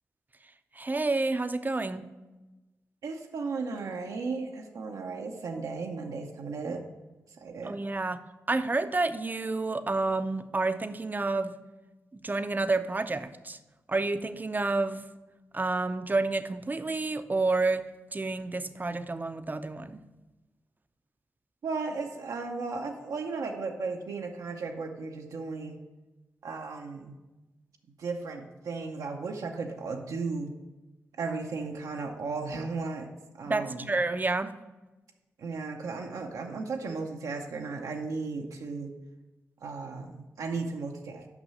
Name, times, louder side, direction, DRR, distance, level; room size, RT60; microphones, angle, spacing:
voice 1, 0.8-2.1 7.6-8.2 8.5-11.5 12.1-13.6 13.9-15.0 15.5-17.9 18.1-20.0 33.5-34.5, right 3 dB, 30° right, 11 dB, 0.6 m, -29 dB
voice 2, 3.0-6.9 7.4-7.8 21.6-25.8 26.4-27.2 28.0-30.5 31.2-33.1 33.3-33.9 35.4-38.9 39.6-41.3, right 4 dB, 75° right, 2 dB, 0.7 m, -35 dB
6.0 x 5.4 x 5.4 m, 1.1 s
supercardioid pair, 40°, 6 cm